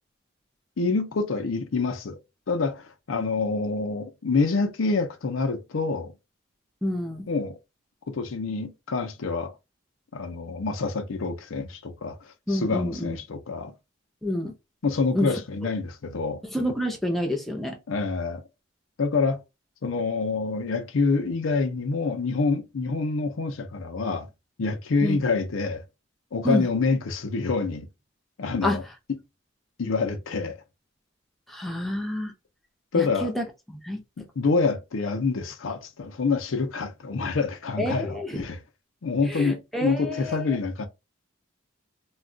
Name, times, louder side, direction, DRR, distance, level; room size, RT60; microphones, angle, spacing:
voice 1, 0.8-2.2 2.5-6.1 7.3-7.6 8.1-9.5 10.1-13.7 14.8-16.4 17.9-18.4 19.0-19.4 19.8-24.3 24.6-25.8 26.3-27.9 28.4-28.8 29.8-30.5 32.9-33.3 34.2-38.6 39.0-40.9, left 4 dB, 85° left, 0.5 m, -27 dB
voice 2, 6.8-7.3 12.5-13.2 14.2-14.5 15.1-15.3 16.5-17.8 25.0-25.2 26.4-26.7 28.6-28.8 31.5-32.3 32.9-34.0 37.8-38.4 39.3-40.6, left 1 dB, ahead, 0.6 m, -28 dB
2.3 x 2.2 x 3.7 m
head